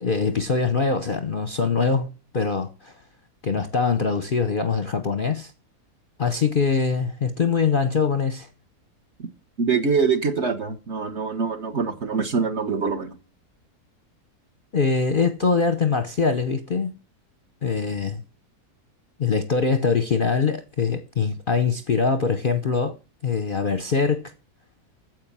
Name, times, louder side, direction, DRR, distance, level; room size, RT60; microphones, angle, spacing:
voice 1, 0.0-2.1 2.3-2.9 3.4-5.5 6.2-8.5 14.7-16.9 17.6-18.2 19.2-22.9 23.2-24.3, left 5 dB, 45° left, 0.8 m, -23 dB
voice 2, 9.6-13.2, right 5 dB, 45° right, 1.5 m, -24 dB
9.5 x 7.8 x 7.3 m
omnidirectional pair, 1.7 m